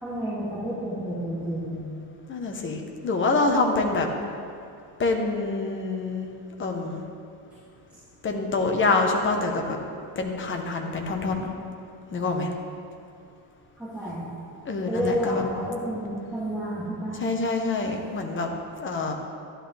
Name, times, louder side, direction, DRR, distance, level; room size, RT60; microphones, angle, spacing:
voice 1, 0.0-1.7 13.8-14.3 14.9-17.2, equal, 5° right, -13 dB, 2.6 m, -30 dB
voice 2, 2.3-4.1 5.0-6.3 6.6-7.0 8.2-9.8 10.1-11.5 12.1-12.5 14.6-15.5 17.1-18.5 18.8-19.1, left 3 dB, 25° left, 2 dB, 1.0 m, -26 dB
13.0 x 10.5 x 3.5 m, 2.5 s
cardioid pair, 165°, 45 cm